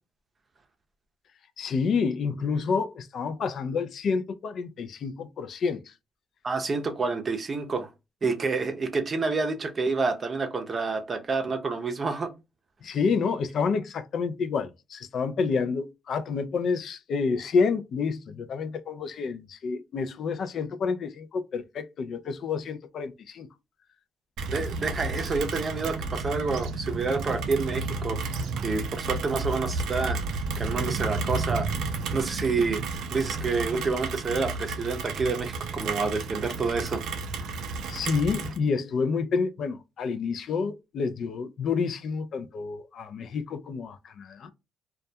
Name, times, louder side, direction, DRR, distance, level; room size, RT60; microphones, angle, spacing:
voice 1, 1.6-5.9 12.8-23.5 37.9-44.5, left 5 dB, 65° left, 0.3 m, -29 dB
voice 2, 6.4-7.9 8.2-12.3 24.5-28.2 28.6-30.2 30.6-31.7 32.1-32.8 33.1-37.0 37.4-37.6, right 4 dB, 35° right, 0.6 m, -28 dB
Rain, 24.4-38.6, right 4 dB, 80° right, 0.4 m, -32 dB
2.2 x 2.1 x 2.6 m
cardioid pair, 90°, 0 cm